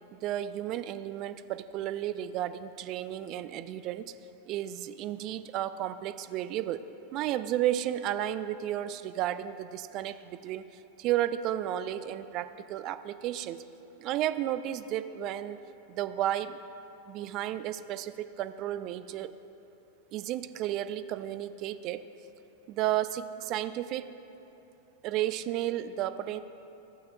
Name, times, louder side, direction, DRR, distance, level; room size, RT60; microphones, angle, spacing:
voice 1, 0.1-4.1 4.5-6.8 7.1-13.6 14.0-15.6 15.9-16.6 17.1-19.3 20.1-22.0 22.7-24.1 25.0-26.4, right 12 dB, 40° right, 12 dB, 0.3 m, -33 dB
15.5 x 6.1 x 2.3 m, 2.9 s
figure-of-eight pair, 90°, 0 cm